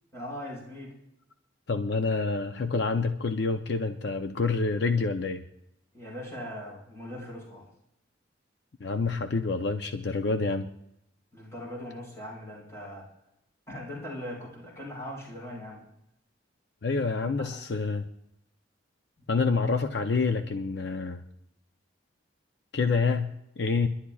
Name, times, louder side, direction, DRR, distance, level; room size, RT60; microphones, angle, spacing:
voice 1, 0.1-0.9 5.9-7.6 11.3-13.1 13.7-15.8 17.2-17.6, left 1 dB, 15° left, -4 dB, 5.1 m, -40 dB
voice 2, 1.7-5.4 8.8-10.7 16.8-18.1 19.3-21.2 22.7-23.9, left 4 dB, 65° left, 7 dB, 0.6 m, -27 dB
30.0 x 11.5 x 2.4 m, 0.80 s
head